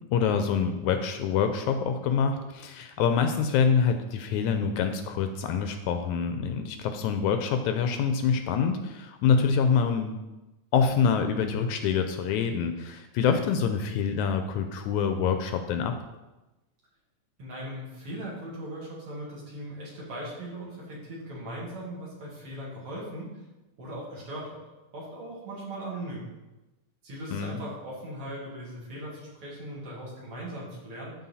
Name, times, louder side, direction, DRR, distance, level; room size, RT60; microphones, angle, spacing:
voice 1, 0.1-10.1 10.7-16.0 27.3-27.6, left 6 dB, 80° left, 7 dB, 1.9 m, -26 dB
voice 2, 17.4-23.3 23.8-24.6 24.9-26.3 27.0-31.1, right 1 dB, 50° right, -5 dB, 2.9 m, -39 dB
12.5 x 4.2 x 4.1 m, 1.1 s
omnidirectional pair, 3.5 m